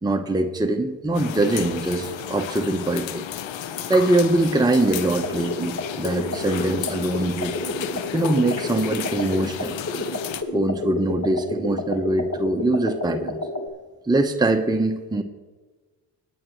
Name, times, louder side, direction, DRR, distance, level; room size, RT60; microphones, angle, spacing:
voice 1, 0.0-3.2 3.9-7.5 8.1-9.7 10.5-13.4 14.1-15.2, right 2 dB, 10° right, 4 dB, 1.0 m, -23 dB
sound 1, 1.1-10.4, left 9 dB, 65° left, 1.0 m, -33 dB
sound 2, 5.0-13.7, left 1 dB, 30° left, 1.9 m, -30 dB
20.0 x 9.1 x 3.2 m, 1.3 s
supercardioid pair, 55°, 50 cm